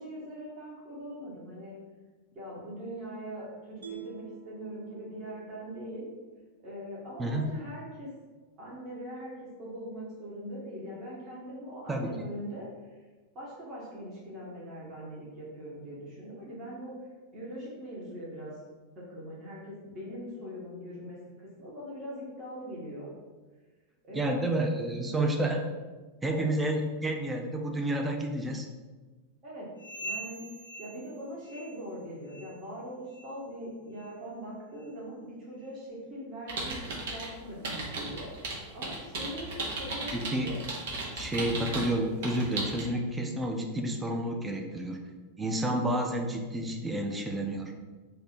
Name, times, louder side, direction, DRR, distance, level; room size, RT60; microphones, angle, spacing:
voice 1, 0.0-1.8 2.3-6.1 6.6-8.1 8.6-12.9 13.3-17.0 17.3-18.5 18.9-23.1 24.1-24.5 26.2-26.5 29.4-29.7 30.0-30.5 30.8-40.6, equal, 30° right, -6 dB, 1.2 m, -41 dB
Mallet percussion, 3.8-7.1, right 8 dB, 75° right, 0.5 m, -50 dB
voice 2, 11.9-12.3 24.1-25.6 26.2-28.7 40.1-40.5 41.2-45.0 45.4-47.7, right 1 dB, 10° right, 2 dB, 0.5 m, -30 dB
sound 1, 29.8-32.0 32.3-32.6 33.1-33.3 33.9-34.1 34.8-34.9 35.6-35.7, right 1 dB, 85° left, 0.4 m, -43 dB
sound 2, 36.5-37.3 37.6-41.9 42.2-42.8, right 2 dB, 55° right, 0.9 m, -35 dB
3.3 x 2.7 x 4.2 m, 1.3 s
figure-of-eight pair, 90°, 0 cm